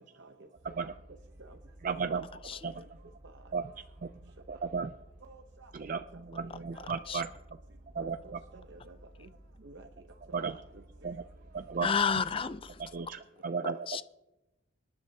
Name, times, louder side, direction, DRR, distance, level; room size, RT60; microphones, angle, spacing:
voice 1, 0.2-0.9 1.4-1.6 1.9-2.2 2.8-2.9 5.2-6.0 6.4-6.9 8.0-9.3 9.6-9.9 10.4-10.6 11.7-11.8, right 3 dB, 65° right, 5 dB, 0.8 m, -52 dB
sound 1, 0.5-13.1, right 1 dB, 20° right, 1.5 m, -55 dB
voice 2, 1.8-2.3 2.6-2.7 3.5-3.7 4.0-4.1 4.5-4.9 5.7-6.0 6.3-7.3 7.9-8.4 10.3-10.6 11.0-11.2 11.5-11.9 12.9-14.0, right 5 dB, 45° right, 9 dB, 0.4 m, -34 dB
voice 3, 2.4-2.7 6.5-6.6 7.1-7.2 11.8-12.8 13.6-14.0, left 6 dB, 25° left, 14 dB, 0.4 m, -31 dB
25.5 x 10.5 x 2.7 m, 0.99 s
head